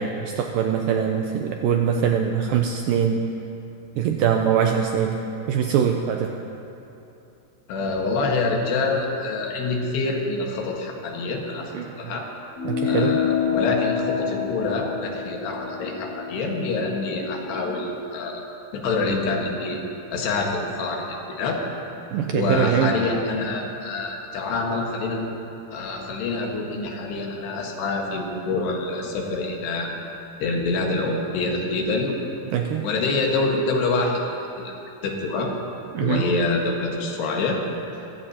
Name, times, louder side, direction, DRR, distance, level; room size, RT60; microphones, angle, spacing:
voice 1, 0.0-3.3 4.0-5.2 5.5-6.4 11.8-11.9 12.7-13.2 22.1-22.9 32.5-32.9 35.9-36.2, right 8 dB, 80° right, 3 dB, 2.1 m, -22 dB
voice 2, 7.7-12.3 12.8-18.4 18.7-19.8 20.1-21.6 22.3-25.3 25.7-29.9 30.4-32.3 32.8-34.7 35.0-35.5 36.0-37.6, left 3 dB, 85° left, 0 dB, 3.7 m, -26 dB
sound 1, 12.6-17.4, left 7 dB, 55° left, 2.9 m, -27 dB
24.5 x 15.5 x 2.9 m, 2.8 s
omnidirectional pair, 4.6 m